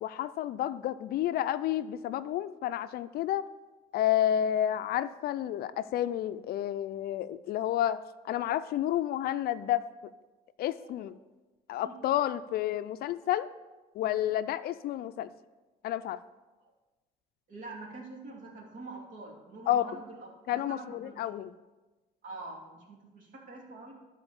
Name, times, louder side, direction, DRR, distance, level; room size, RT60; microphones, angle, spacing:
voice 1, 0.0-3.5 3.9-9.9 10.6-11.2 11.7-13.5 13.9-15.3 15.8-16.2 19.7-20.0 20.5-21.5, left 11 dB, 65° left, 13 dB, 0.4 m, -30 dB
voice 2, 17.5-21.2 22.2-23.9, right 3 dB, 50° right, -1 dB, 2.7 m, -45 dB
12.5 x 4.5 x 7.0 m, 1.2 s
cardioid pair, 110°, 17 cm